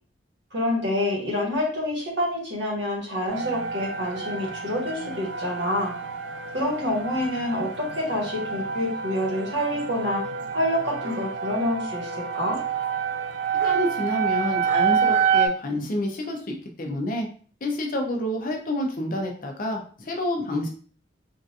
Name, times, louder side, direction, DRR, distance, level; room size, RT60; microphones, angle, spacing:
voice 1, 0.5-5.9 6.5-12.6, left 1 dB, 70° right, -2 dB, 1.4 m, -27 dB
sound 1, 3.3-15.5, right 6 dB, 85° right, 0.4 m, -28 dB
voice 2, 13.6-17.3 17.6-20.7, left 1 dB, 50° left, 2 dB, 0.7 m, -28 dB
3.7 x 2.5 x 2.6 m, 0.44 s
head